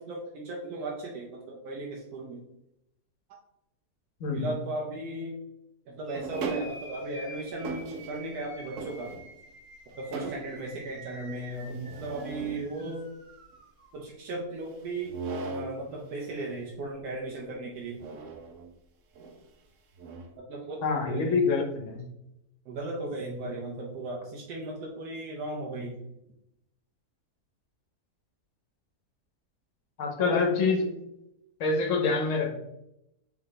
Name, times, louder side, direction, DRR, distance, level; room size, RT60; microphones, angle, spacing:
voice 1, 0.0-2.4 4.3-5.4 5.9-9.1 10.0-13.1 13.9-15.2 15.4-18.0 20.4-21.4 22.7-26.0 30.2-30.4, right 2 dB, 85° right, -3 dB, 1.2 m, -36 dB
sound 1, 6.0-14.0, right 1 dB, 25° right, 0.9 m, -49 dB
sound 2, 6.1-7.1 7.6-8.4 8.8-9.5 9.9-10.6 11.7-12.6 14.9-15.8 18.0-18.7 19.1-19.4 20.0-20.3, right 4 dB, 65° right, 0.9 m, -38 dB
voice 2, 20.8-22.1 30.0-30.9 31.6-32.5, left 4 dB, 60° left, 3 dB, 1.1 m, -26 dB
3.5 x 3.2 x 3.8 m, 0.84 s
omnidirectional pair, 1.6 m